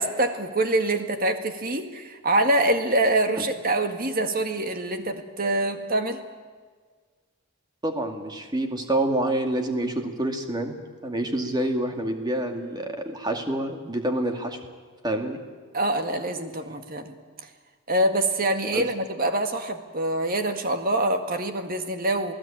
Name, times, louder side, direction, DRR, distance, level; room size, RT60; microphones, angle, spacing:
voice 1, 0.0-6.2 15.7-17.2 17.9-22.3, right 1 dB, 40° right, 6 dB, 1.9 m, -25 dB
voice 2, 7.8-10.8 11.0-14.6 15.0-15.4 18.7-18.8, right 1 dB, 20° right, 4 dB, 2.3 m, -27 dB
28.5 x 18.0 x 8.9 m, 1.5 s
head